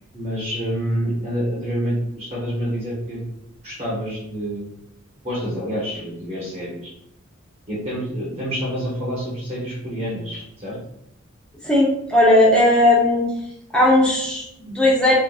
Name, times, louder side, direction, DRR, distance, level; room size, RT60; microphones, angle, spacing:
voice 1, 0.1-3.2 3.6-4.7 5.2-6.9 7.7-10.8, equal, 30° right, -7 dB, 0.7 m, -27 dB
voice 2, 11.6-13.3 13.7-15.2, left 1 dB, 5° left, -5 dB, 0.7 m, -16 dB
2.5 x 2.5 x 2.3 m, 0.76 s
head